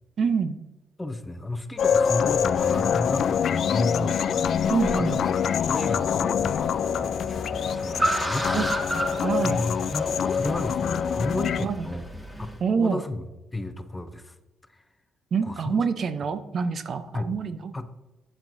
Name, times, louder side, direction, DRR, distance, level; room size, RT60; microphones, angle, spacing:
voice 1, 0.2-0.6 4.7-5.2 8.5-9.6 11.6-11.9 12.6-13.0 15.3-17.7, right 5 dB, 55° right, 11 dB, 0.6 m, -26 dB
voice 2, 1.0-8.5 9.4-12.1 12.4-13.2 13.5-14.3 14.7-14.8 15.4-15.8 17.1-17.3 17.7-17.9, left 2 dB, 15° left, 9 dB, 0.6 m, -33 dB
sound 1, 1.8-11.6, left 7 dB, 65° left, 0.3 m, -25 dB
Car, 5.2-12.6, right 1 dB, 10° right, 1.8 m, -33 dB
8.8 x 7.3 x 2.6 m, 1.1 s
cardioid pair, 90°, 0 cm